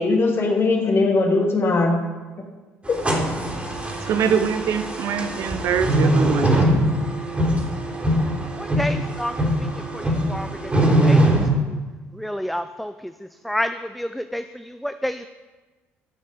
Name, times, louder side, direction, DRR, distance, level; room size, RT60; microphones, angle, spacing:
voice 1, 0.0-2.0 2.9-3.0, left 3 dB, 40° left, 1 dB, 2.4 m, -19 dB
sound 1, 2.9-11.5, right 1 dB, 20° right, 3.5 m, -22 dB
voice 2, 4.0-6.7, right 7 dB, 55° right, 11 dB, 0.8 m, -23 dB
voice 3, 8.6-11.8 12.1-15.3, equal, ahead, 10 dB, 0.4 m, -30 dB
13.0 x 6.5 x 5.3 m, 1.3 s
figure-of-eight pair, 55°, 6 cm